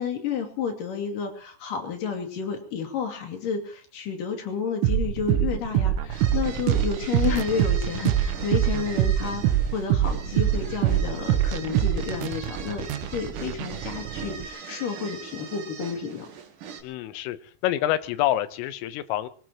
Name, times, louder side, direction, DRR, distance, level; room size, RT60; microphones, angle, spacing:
voice 1, 0.0-16.3, left 6 dB, 50° left, 3 dB, 3.7 m, -31 dB
sound 1, 4.8-14.5, right 11 dB, 85° right, 3.6 m, -25 dB
sound 2, 6.1-16.8, right 6 dB, 55° right, 2.8 m, -40 dB
voice 2, 16.8-17.4 17.6-19.3, left 13 dB, 85° left, 13 dB, 3.5 m, -26 dB
24.5 x 18.0 x 3.0 m, 0.43 s
omnidirectional pair, 5.7 m